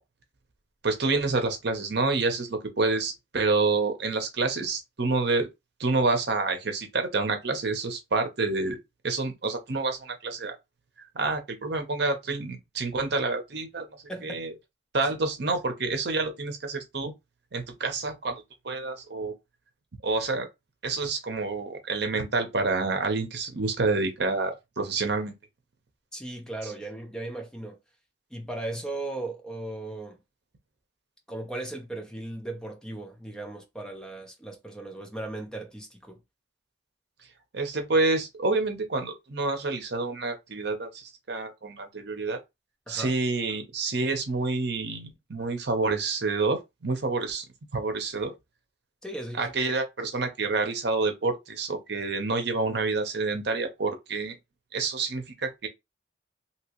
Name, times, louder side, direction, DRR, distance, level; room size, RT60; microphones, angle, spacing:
voice 1, 0.8-5.5 5.8-8.8 9.0-10.6 11.1-14.5 14.9-17.1 17.5-19.3 20.0-20.5 20.8-25.4 26.6-26.7 37.5-42.4 42.9-47.4 47.7-48.3 49.4-54.4 54.7-55.7, right 3 dB, 65° right, 0.8 m, -28 dB
voice 2, 14.1-14.5 26.1-27.8 28.3-30.2 31.3-36.2 42.9-43.1 49.0-49.5, right 2 dB, 5° left, 0.7 m, -37 dB
2.9 x 2.9 x 2.9 m
head